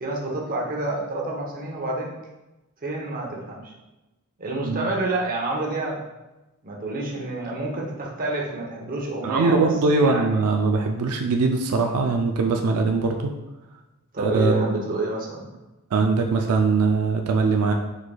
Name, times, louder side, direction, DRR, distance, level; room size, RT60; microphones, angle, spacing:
voice 1, 0.0-2.1 2.8-3.7 4.4-6.0 6.6-9.7 10.0-10.4 14.1-15.5, right 2 dB, 40° right, -1 dB, 0.8 m, -28 dB
voice 2, 9.2-13.3 14.2-14.8 15.9-17.7, right 4 dB, 85° right, 3 dB, 0.4 m, -21 dB
4.7 x 4.0 x 2.3 m, 1.0 s
head